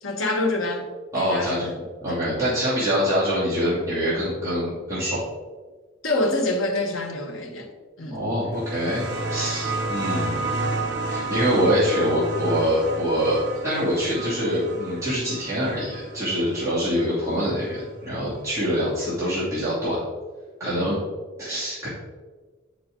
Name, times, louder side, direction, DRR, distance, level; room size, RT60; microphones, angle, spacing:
voice 1, 0.0-0.9 1.1-2.2 6.0-7.7 8.0-8.2 20.6-20.9, left 2 dB, 75° left, 2 dB, 1.4 m, -26 dB
voice 2, 1.1-1.7 2.0-5.2 8.1-9.0 9.3-10.4 11.1-20.0 20.6-21.0 21.4-21.9, equal, 15° right, -12 dB, 2.7 m, -24 dB
sound 1, 8.5-17.8 18.9-19.0, right 2 dB, 55° right, 1.2 m, -31 dB
8.8 x 6.0 x 3.8 m, 1.4 s
head